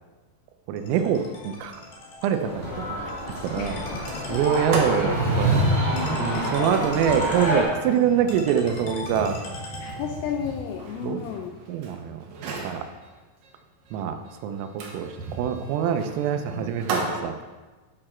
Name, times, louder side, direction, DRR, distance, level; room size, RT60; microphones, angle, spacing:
voice 1, 0.7-1.8 2.2-3.0 3.4-3.8 4.3-5.7 6.2-9.4 11.0-11.2 11.7-12.9 13.9-14.2 14.4-17.3, right 8 dB, 85° right, 7 dB, 3.4 m, -25 dB
Ringtone, 0.8-10.3, left 2 dB, 65° left, 3.6 m, -41 dB
Sliding door, 2.3-2.4 2.8-2.9 3.2-3.5 3.9-11.9 12.3-12.8 14.8-17.2, right 2 dB, 70° right, 2.1 m, -30 dB
sound 1, 2.4-7.6, equal, 10° left, 2.5 m, -29 dB
voice 2, 3.6-4.8 5.1-6.9 7.2-7.4 9.8-11.5, left 8 dB, 80° left, 2 dB, 3.2 m, -34 dB
9.9 x 7.8 x 4.4 m, 1.3 s
omnidirectional pair, 5.9 m